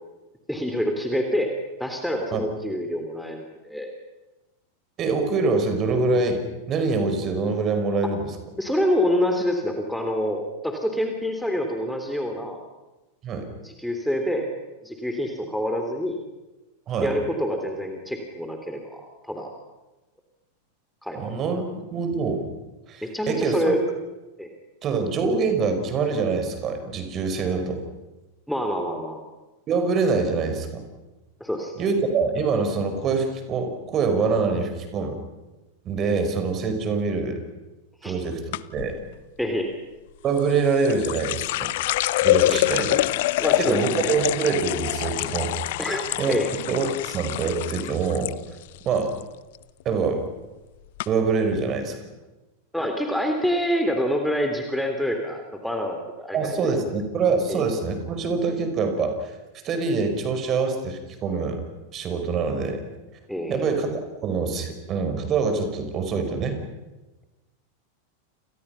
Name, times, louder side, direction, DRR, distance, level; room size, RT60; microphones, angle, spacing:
voice 1, 0.5-1.5 1.8-3.9 8.6-12.6 13.6-14.5 14.8-16.2 17.0-19.5 21.0-21.4 23.0-23.8 24.4-24.5 28.5-29.2 31.4-31.7 38.0-38.1 39.4-39.7 42.5-42.7 43.4-44.2 45.8-46.5 52.7-56.7 57.5-57.7 63.3-63.7, equal, ahead, 4 dB, 3.5 m, -27 dB
voice 2, 5.0-8.3 13.2-13.5 16.9-17.2 21.1-22.5 22.9-23.7 24.8-27.8 29.7-30.9 31.8-35.2 35.9-37.4 38.0-39.0 40.2-41.7 42.2-43.0 43.6-45.5 46.2-46.4 46.7-48.3 48.9-49.1 49.9-50.2 51.1-52.0 56.3-59.3 59.6-61.6 61.9-62.8 63.5-66.6, right 4 dB, 30° right, 7 dB, 5.4 m, -25 dB
sound 1, 38.5-38.9 40.4-48.3 48.6-49.2 49.5-49.9 50.6-50.7 51.0-51.1, left 17 dB, 50° left, 0.8 m, -25 dB
29.5 x 29.0 x 5.9 m, 1.1 s
figure-of-eight pair, 90°, 0 cm